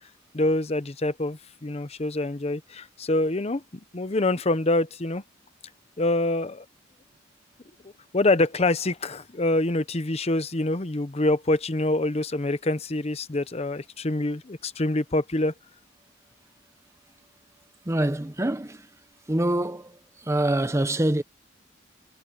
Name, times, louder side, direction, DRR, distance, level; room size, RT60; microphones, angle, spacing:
voice 1, 0.3-5.2 6.0-6.7 8.1-15.5, left 2 dB, 35° left, 0.8 m, -25 dB
voice 2, 17.9-18.9 19.3-21.2, right 1 dB, 15° right, 0.7 m, -25 dB
head